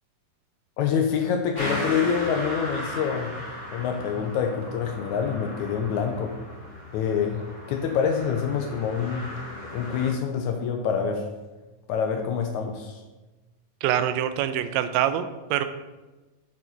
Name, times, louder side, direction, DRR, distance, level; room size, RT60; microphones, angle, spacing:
voice 1, 0.8-3.3 3.7-6.3 6.9-7.4 7.7-9.2 9.7-11.2 11.9-13.0, left 7 dB, 85° left, 4 dB, 1.7 m, -26 dB
sound 1, 1.5-10.1, left 1 dB, 15° left, 2.2 m, -36 dB
voice 2, 13.8-15.7, right 11 dB, 85° right, 11 dB, 2.3 m, -25 dB
8.3 x 4.5 x 4.4 m, 1.2 s
omnidirectional pair, 4.0 m